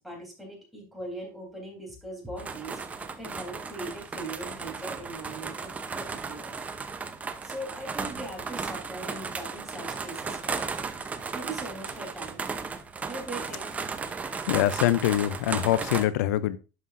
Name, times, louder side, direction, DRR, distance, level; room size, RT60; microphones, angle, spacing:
voice 1, 0.0-6.5 7.4-10.7 11.3-12.5 13.0-13.7, right 1 dB, ahead, 3.2 m, -40 dB
sound 1, 2.4-16.0, right 4 dB, 15° right, 0.6 m, -35 dB
voice 2, 14.5-16.6, left 13 dB, 90° left, 0.5 m, -24 dB
11.0 x 5.6 x 2.5 m
supercardioid pair, 140°, 9 cm